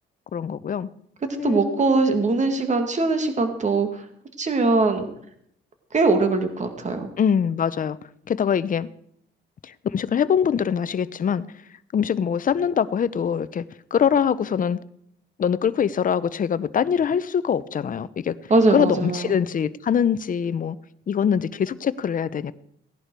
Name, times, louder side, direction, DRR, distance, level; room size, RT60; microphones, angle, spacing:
voice 1, 0.3-0.9 1.4-1.9 7.2-8.0 8.3-8.9 9.6-11.4 11.9-13.6 13.9-14.8 15.4-18.4 18.7-20.8 21.1-22.5, left 7 dB, 45° left, 0.7 m, -23 dB
voice 2, 1.4-4.0 4.4-5.1 5.9-7.1 18.5-19.4, right 3 dB, 35° right, 2.0 m, -21 dB
17.5 x 11.0 x 4.7 m
cardioid pair, 90°, 20 cm